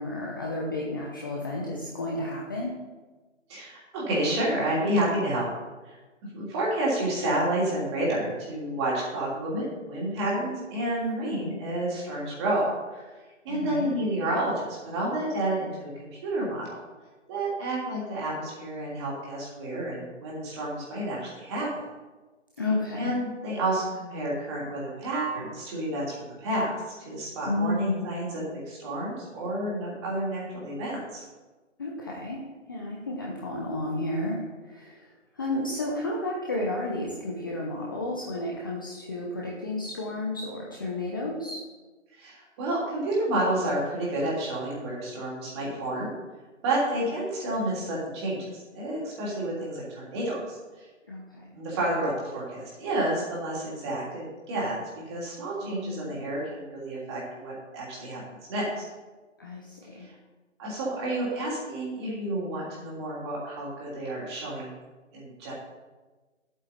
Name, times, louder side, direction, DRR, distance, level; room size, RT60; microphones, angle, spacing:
voice 1, 0.0-2.7 13.5-13.9 22.6-23.1 27.5-28.1 31.8-32.4 32.7-41.7 51.1-51.5 55.6-56.2 59.4-60.1, left 2 dB, 15° left, -3 dB, 0.7 m, -32 dB
voice 2, 3.5-5.5 5.8-5.9 6.2-13.1 13.4-16.7 17.3-21.7 23.0-26.7 27.0-31.2 42.2-46.1 46.6-50.8 51.5-54.8 55.1-58.7 60.0-60.1 60.6-64.7 65.1-65.5, right 1 dB, 20° right, -5 dB, 3.0 m, -30 dB
11.5 x 8.2 x 4.3 m, 1.3 s
figure-of-eight pair, 160°, 37 cm